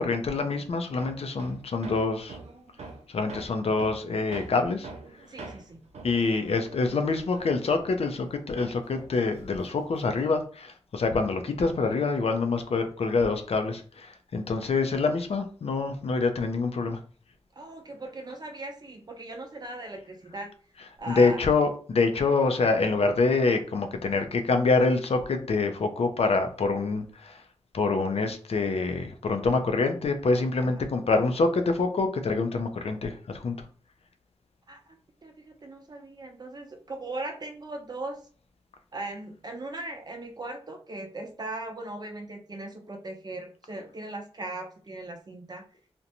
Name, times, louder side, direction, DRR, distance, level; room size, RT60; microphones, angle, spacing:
voice 1, 0.0-2.4 3.1-4.9 6.0-17.0 21.1-27.4 27.7-33.7, left 3 dB, 65° left, 6 dB, 0.4 m, -26 dB
Hammer, 1.0-8.3 8.6-10.3, right 3 dB, 75° right, 0.5 m, -45 dB
voice 2, 5.3-5.8 17.5-20.5 21.0-21.4 30.6-30.8 34.7-35.0 35.2-38.2 38.9-45.6, right 2 dB, 35° right, 3 dB, 0.6 m, -39 dB
2.5 x 2.1 x 2.8 m, 0.41 s
cardioid pair, 60°, 11 cm